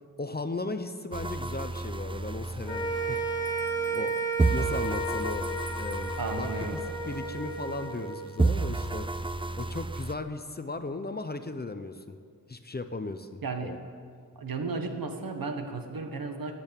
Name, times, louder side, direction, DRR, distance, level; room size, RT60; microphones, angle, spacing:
voice 1, 0.2-3.2 3.6-4.2 4.5-5.5 5.8-6.5 7.1-9.1 9.6-12.2 12.5-13.8, left 3 dB, 25° left, 9 dB, 0.7 m, -36 dB
sound 1, 1.1-4.1 4.4-8.1 8.4-10.1, right 3 dB, 15° right, 0.4 m, -32 dB
sound 2, 2.7-9.1, right 3 dB, 10° left, 1.5 m, -33 dB
Bell, 3.1-6.2, right 7 dB, 90° right, 1.5 m, -54 dB
voice 2, 6.2-6.8 13.4-13.8 14.3-16.5, right 3 dB, 65° right, 5 dB, 1.6 m, -34 dB
14.0 x 8.7 x 8.9 m, 2.1 s
wide cardioid pair, 110°, 37 cm